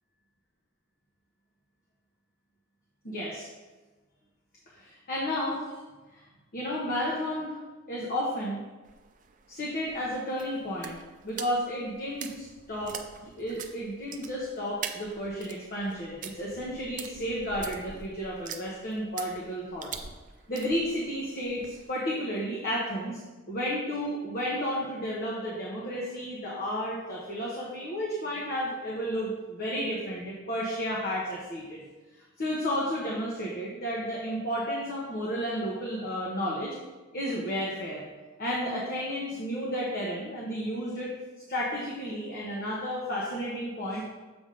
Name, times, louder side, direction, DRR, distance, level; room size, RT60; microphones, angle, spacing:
voice 1, 3.0-3.5 4.8-5.7 6.5-7.6 7.9-8.6 9.5-11.0 11.2-13.0 13.4-19.9 20.5-23.2 23.5-31.8 32.4-36.7 37.1-38.0 38.4-41.1 41.5-44.0, equal, 45° left, -5 dB, 1.1 m, -32 dB
sound 1, 8.8-21.9, right 7 dB, 40° right, 0.5 m, -44 dB
7.1 x 3.6 x 5.1 m, 1.2 s
head